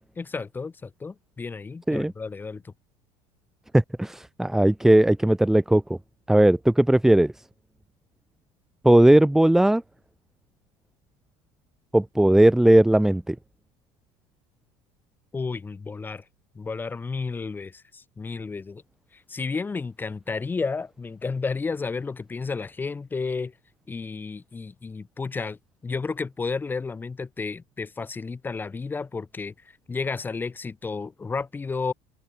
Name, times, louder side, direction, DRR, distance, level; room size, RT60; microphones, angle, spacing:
voice 1, 0.2-2.7 15.3-16.2 16.5-18.8 19.1-23.5 23.9-29.5 29.9-31.9, left 4 dB, 15° left, 3.1 m, -32 dB
voice 2, 3.7-5.8 6.3-7.3 8.8-9.8 11.9-13.3, right 1 dB, 5° right, 1.4 m, -18 dB
cardioid pair, 165°, 14 cm